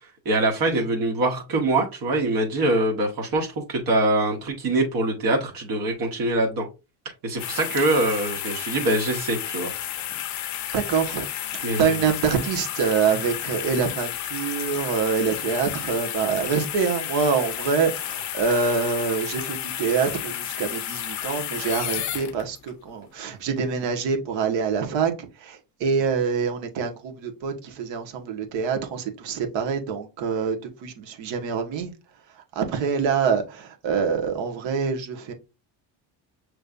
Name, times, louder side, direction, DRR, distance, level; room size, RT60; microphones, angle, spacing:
voice 1, 0.2-6.7 7.2-9.7 11.6-11.9, right 2 dB, 50° right, 1.3 m, -24 dB
sound 1, 7.4-22.7 23.2-23.3, left 11 dB, 40° left, 0.5 m, -32 dB
voice 2, 10.7-11.3 11.5-31.9 32.3-35.3, right 6 dB, 75° right, 1.4 m, -25 dB
6.7 x 3.2 x 2.5 m
cardioid pair, 175°, 44 cm